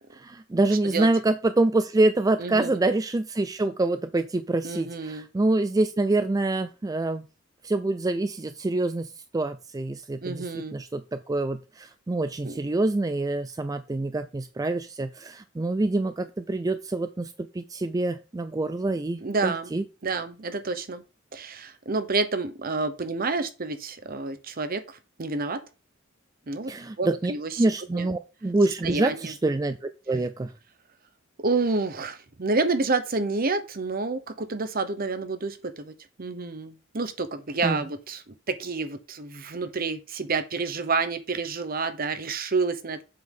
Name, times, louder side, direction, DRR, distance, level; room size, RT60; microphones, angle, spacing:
voice 1, 0.1-7.3 7.6-19.8 26.7-27.3 27.6-30.5 37.6-37.8, right 2 dB, 20° right, 0.4 m, -26 dB
voice 2, 2.4-2.8 4.6-5.2 10.2-10.8 12.4-12.6 19.2-19.7 20.0-21.0 21.3-25.6 26.5-26.7 27.0-27.6 27.9-28.1 28.8-29.3 31.4-35.9 36.2-43.0, right 3 dB, 50° right, 0.9 m, -29 dB
7.6 x 3.9 x 5.4 m
head